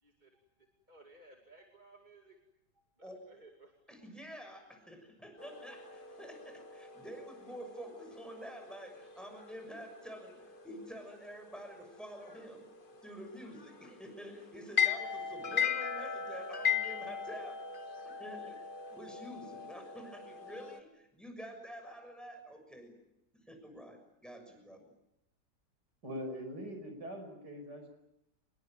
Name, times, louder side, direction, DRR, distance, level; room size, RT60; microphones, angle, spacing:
voice 1, 0.0-2.4 2.8-3.8, right 2 dB, 25° right, 1 dB, 2.6 m, -59 dB
voice 2, 3.9-12.7 13.0-17.6 18.0-18.6 18.9-23.0 23.3-24.9, equal, ahead, 5 dB, 6.6 m, -48 dB
sound 1, 5.4-20.8, left 8 dB, 30° left, 1.5 m, -39 dB
voice 3, 26.0-27.9, equal, 75° right, 5 dB, 6.2 m, -42 dB
26.0 x 21.5 x 9.0 m, 0.85 s
omnidirectional pair, 1.8 m